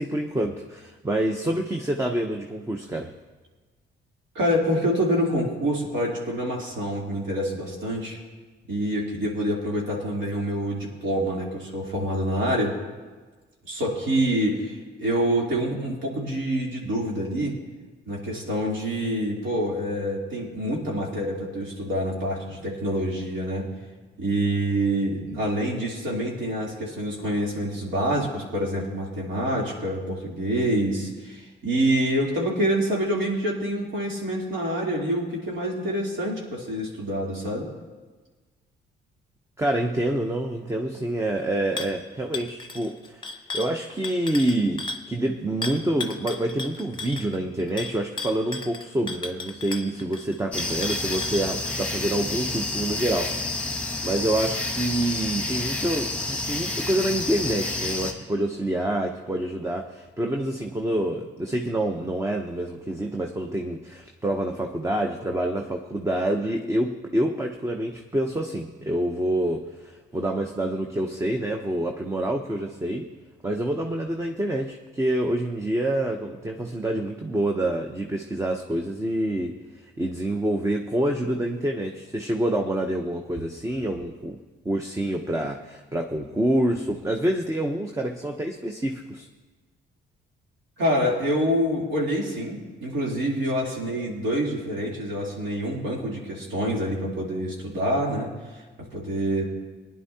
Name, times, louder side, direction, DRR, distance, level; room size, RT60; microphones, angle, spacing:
voice 1, 0.0-3.1 39.6-73.1 73.4-84.4 84.6-89.3, right 1 dB, 15° right, 3 dB, 0.8 m, -27 dB
voice 2, 4.3-8.2 8.7-12.7 13.7-17.6 18.1-23.7 24.2-37.7 90.8-98.3 98.9-99.4, equal, 70° right, -3 dB, 3.3 m, -26 dB
sound 1, 41.8-42.0 42.3-45.1 45.6-52.0, left 3 dB, 25° left, 1.0 m, -35 dB
sound 2, 50.5-58.1, left 2 dB, 5° left, 1.6 m, -29 dB
19.0 x 10.5 x 2.8 m, 1.3 s
cardioid pair, 90°, 20 cm